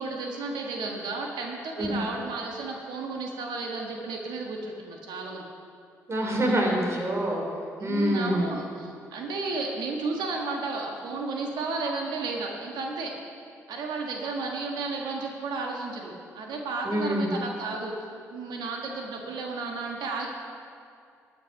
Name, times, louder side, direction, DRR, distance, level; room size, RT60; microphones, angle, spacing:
voice 1, 0.0-5.4 7.8-13.1 13.7-17.9 18.3-20.3, right 3 dB, 70° right, 1 dB, 1.5 m, -33 dB
voice 2, 6.1-7.5 7.8-8.5 16.8-17.3, equal, 35° right, 0 dB, 3.3 m, -26 dB
12.0 x 8.8 x 5.5 m, 2.4 s
hypercardioid pair, 45°, 8 cm